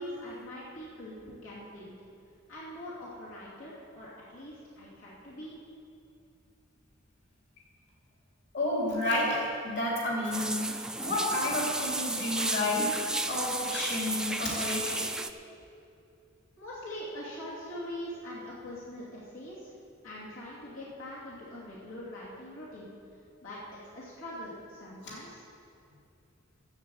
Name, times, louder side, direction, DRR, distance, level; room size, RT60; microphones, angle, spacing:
voice 1, 0.0-1.9 2.5-5.6 16.6-19.7 20.0-22.9 23.4-25.4, left 1 dB, 90° left, -8 dB, 2.8 m, -43 dB
voice 2, 8.5-15.1, left 1 dB, 60° left, -4 dB, 2.8 m, -31 dB
sound 1, 10.3-15.3, right 2 dB, 5° right, 0.4 m, -33 dB
12.5 x 7.9 x 7.8 m, 2.5 s
head